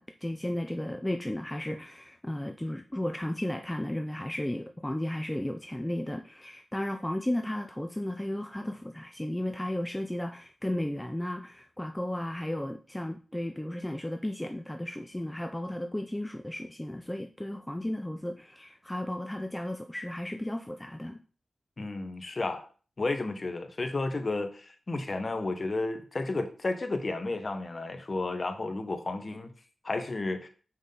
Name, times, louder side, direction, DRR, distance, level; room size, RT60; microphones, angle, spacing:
voice 1, 0.0-21.2, left 1 dB, 10° left, 0.6 m, -34 dB
voice 2, 21.8-22.6 23.0-29.5 29.8-30.5, left 2 dB, 50° left, 1.2 m, -32 dB
6.3 x 5.4 x 3.9 m
cardioid pair, 55°, 0 cm